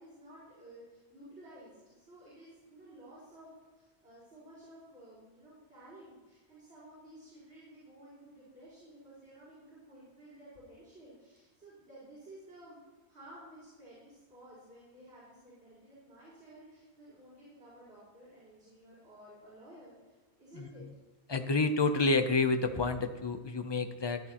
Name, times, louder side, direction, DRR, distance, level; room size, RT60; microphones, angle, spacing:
voice 1, 0.0-12.8 13.1-20.9, right 1 dB, 80° right, -11 dB, 5.1 m, -54 dB
voice 2, 21.3-24.2, left 3 dB, 30° left, 8 dB, 0.6 m, -29 dB
15.0 x 11.0 x 3.0 m, 1.2 s
omnidirectional pair, 1.1 m